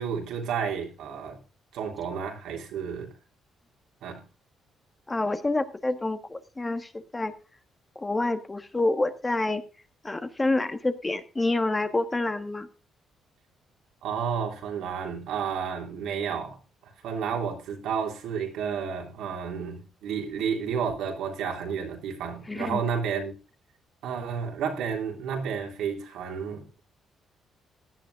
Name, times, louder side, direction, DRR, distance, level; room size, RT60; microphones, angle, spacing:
voice 1, 0.0-1.4 1.7-3.1 4.0-4.2 14.0-16.6 17.0-23.4 24.0-26.8, right 6 dB, 85° right, 3.4 m, -31 dB
voice 2, 5.1-7.3 8.0-9.6 10.0-12.7 22.5-22.8, left 2 dB, 20° left, 1.4 m, -28 dB
17.0 x 11.0 x 2.5 m
cardioid pair, 90°, 0 cm